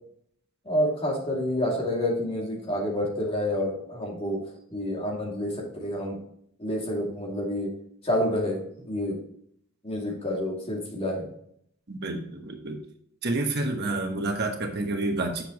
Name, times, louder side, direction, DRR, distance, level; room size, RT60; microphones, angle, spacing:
voice 1, 0.6-4.4 4.7-6.2 6.6-7.7 8.0-9.2 9.8-11.3, left 1 dB, 30° left, -2 dB, 2.5 m, -28 dB
voice 2, 11.9-12.8 13.2-15.4, right 2 dB, 50° right, 3 dB, 1.2 m, -29 dB
8.2 x 6.8 x 3.0 m, 0.67 s
head